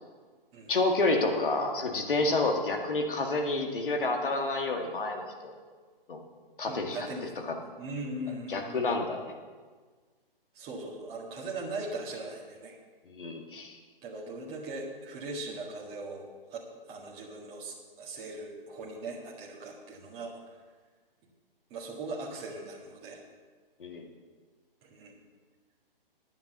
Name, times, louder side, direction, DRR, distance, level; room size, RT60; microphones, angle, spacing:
voice 1, 0.7-5.6 6.1-6.2 6.6-7.1 7.5-7.6 8.5-9.3 13.1-13.8 23.8-24.1, left 2 dB, 65° left, 3 dB, 2.1 m, -29 dB
voice 2, 6.6-8.8 10.5-12.8 14.0-16.2 16.5-16.6 16.9-20.3 21.7-23.2 24.8-25.2, right 2 dB, 20° right, -5 dB, 1.9 m, -39 dB
9.6 x 9.2 x 6.6 m, 1.5 s
figure-of-eight pair, 130°, 29 cm